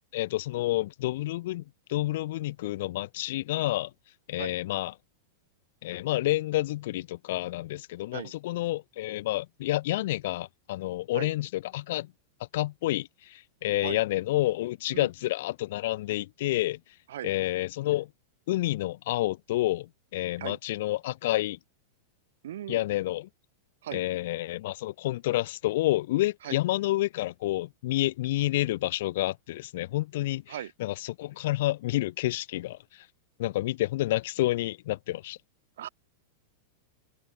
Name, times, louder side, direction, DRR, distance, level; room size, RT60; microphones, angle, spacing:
voice 1, 0.1-3.9 4.3-4.9 5.8-12.1 12.5-16.8 17.2-18.1 18.5-21.6 22.7-23.3 23.9-33.1 33.4-35.4, left 16 dB, 65° left, 0.6 m, -29 dB
voice 2, 22.4-22.8 23.8-24.0 26.4-26.6 30.5-30.7 35.8-35.9, right 12 dB, 80° right, 1.2 m, -37 dB
hypercardioid pair, 135°, 0 cm